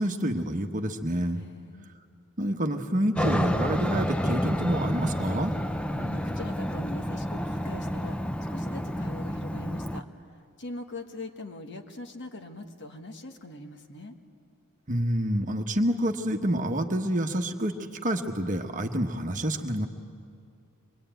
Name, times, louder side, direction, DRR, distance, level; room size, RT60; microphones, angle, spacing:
voice 1, 0.0-1.4 2.4-5.5 14.9-17.8 18.0-19.9, right 1 dB, 35° right, 5 dB, 1.2 m, -28 dB
voice 2, 1.3-1.9 5.9-14.2, left 2 dB, 55° left, 5 dB, 1.6 m, -42 dB
Aircraft, 3.2-10.0, equal, 5° left, 0.6 m, -29 dB
25.0 x 22.0 x 9.2 m, 2.4 s
head